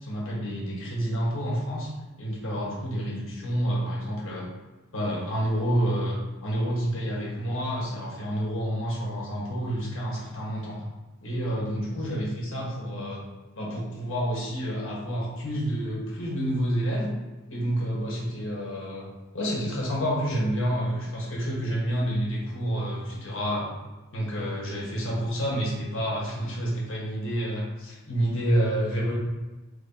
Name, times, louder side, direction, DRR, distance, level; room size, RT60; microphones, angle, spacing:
voice 1, 0.0-1.9 2.2-4.5 4.9-10.8 11.2-13.2 13.6-17.1 17.5-19.1 19.3-23.7 24.1-29.2, equal, 65° left, -4 dB, 1.4 m, -29 dB
3.4 x 3.2 x 4.0 m, 1.2 s
head